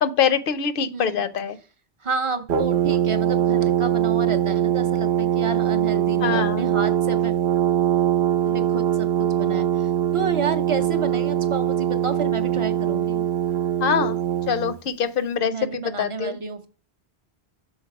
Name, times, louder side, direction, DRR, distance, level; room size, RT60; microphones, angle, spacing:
voice 1, 0.0-1.6 6.2-6.6 13.8-14.2 14.5-16.4, left 7 dB, 65° left, 13 dB, 0.7 m, -24 dB
voice 2, 0.9-1.3 2.0-7.3 8.4-13.3 15.4-16.7, right 4 dB, 40° right, 8 dB, 0.5 m, -30 dB
Brass instrument, 2.5-14.8, right 11 dB, 85° right, 0.9 m, -22 dB
6.4 x 4.0 x 4.6 m, 0.37 s
omnidirectional pair, 1.1 m